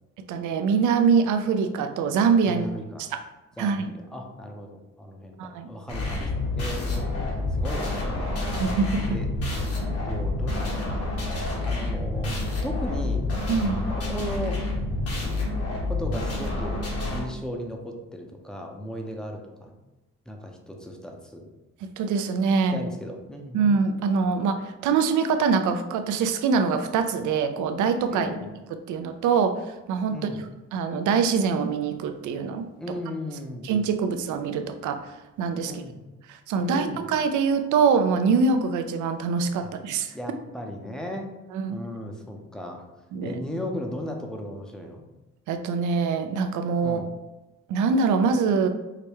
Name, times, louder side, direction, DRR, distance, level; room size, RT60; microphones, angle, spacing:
voice 1, 0.3-2.7 3.1-3.2 3.6-3.9 5.4-5.7 8.6-9.2 13.5-13.8 22.0-22.8 23.5-28.3 28.9-30.2 30.7-32.7 33.6-35.0 35.4-35.7 36.3-40.1 41.5-41.8 43.1-43.4 45.5-47.0 47.7-48.7, right 5 dB, 80° right, 8 dB, 0.5 m, -24 dB
voice 2, 2.5-3.0 3.6-8.3 9.1-9.3 10.0-10.9 11.6-12.3 12.6-13.3 13.9-14.6 15.9-19.7 20.3-21.5 22.7-23.6 28.1-28.5 30.1-30.4 32.8-33.7 35.6-36.1 36.6-37.0 39.6-39.7 40.1-41.3 41.7-42.8 43.2-45.0 46.8-47.1, left 1 dB, ahead, 2 dB, 0.6 m, -36 dB
sound 1, 5.9-17.2, left 2 dB, 50° left, 1.3 m, -28 dB
4.8 x 2.1 x 2.9 m, 1.1 s
cardioid pair, 90°, 30 cm